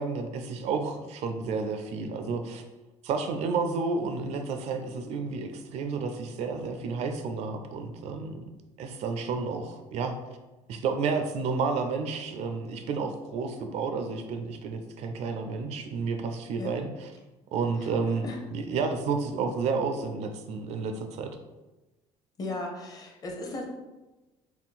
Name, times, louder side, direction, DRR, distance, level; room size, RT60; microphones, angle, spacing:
voice 1, 0.0-2.6 3.0-8.5 8.8-10.1 10.7-17.1 17.5-21.4, right 4 dB, 60° right, 6 dB, 0.4 m, -31 dB
voice 2, 17.7-18.4 22.4-23.7, left 2 dB, 30° left, 1 dB, 0.7 m, -37 dB
3.7 x 2.3 x 4.1 m, 1.1 s
cardioid pair, 140°, 13 cm